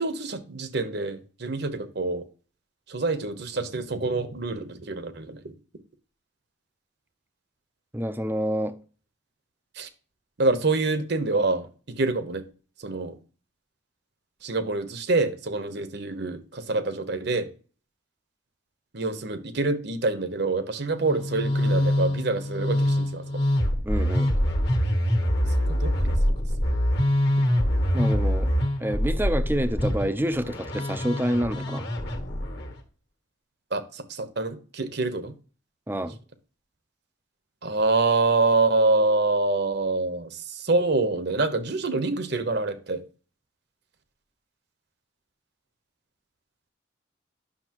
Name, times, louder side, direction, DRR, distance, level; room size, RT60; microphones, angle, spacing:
voice 1, 0.0-2.3 2.9-5.4 9.7-9.9 10.4-11.7 11.9-12.4 12.8-13.2 14.4-17.5 18.9-23.4 25.4-26.1 33.7-35.3 37.6-43.0, right 3 dB, 55° right, 1.0 m, -26 dB
voice 2, 7.9-8.8 23.9-24.3 27.9-28.5 28.8-31.9 35.9-36.2, equal, 10° right, 0.5 m, -28 dB
Musical instrument, 21.0-32.7, equal, 55° left, 1.5 m, -25 dB
9.7 x 6.5 x 3.0 m
head